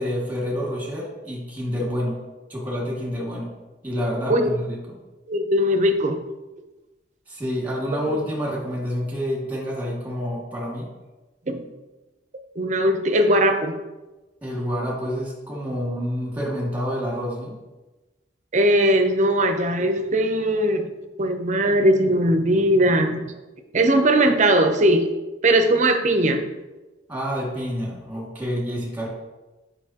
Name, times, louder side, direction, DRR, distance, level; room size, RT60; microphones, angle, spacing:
voice 1, 0.0-2.2 2.5-3.5 3.8-5.0 7.3-10.9 14.4-17.6 27.1-29.1, equal, 10° right, -4 dB, 2.0 m, -28 dB
voice 2, 5.3-6.2 8.0-8.2 11.5-11.6 12.6-13.7 18.5-20.9 21.2-23.2 23.7-25.1 25.4-26.4, right 1 dB, 40° right, 6 dB, 0.6 m, -19 dB
8.5 x 5.2 x 2.9 m, 1.1 s
head